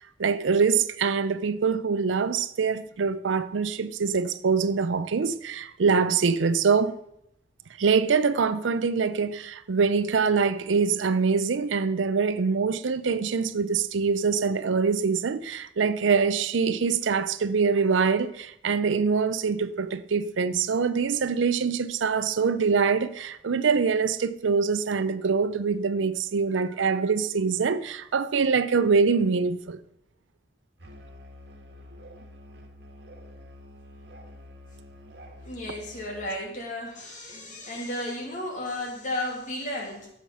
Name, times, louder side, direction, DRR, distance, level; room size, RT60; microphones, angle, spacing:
voice 1, 0.0-7.0 7.8-29.8, right 5 dB, 85° right, 0.5 m, -24 dB
Musical instrument, 30.8-36.4, left 1 dB, 60° right, 1.5 m, -47 dB
voice 2, 35.4-40.1, left 1 dB, 40° left, 2.7 m, -33 dB
14.0 x 5.8 x 5.6 m
head